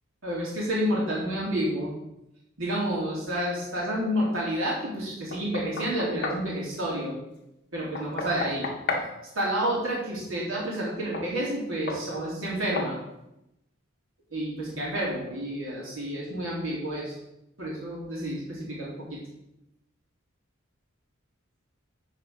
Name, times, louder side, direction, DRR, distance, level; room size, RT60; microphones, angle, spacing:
voice 1, 0.2-1.9 2.6-7.2 7.7-8.7 9.3-13.0 14.3-17.2 17.6-19.2, equal, 80° right, -5 dB, 3.4 m, -29 dB
Knock, 5.3-6.5 7.9-9.1 11.1-11.3 11.9-12.1 12.8-13.0, left 2 dB, 50° left, 1.2 m, -32 dB
9.4 x 4.9 x 6.5 m, 0.88 s
head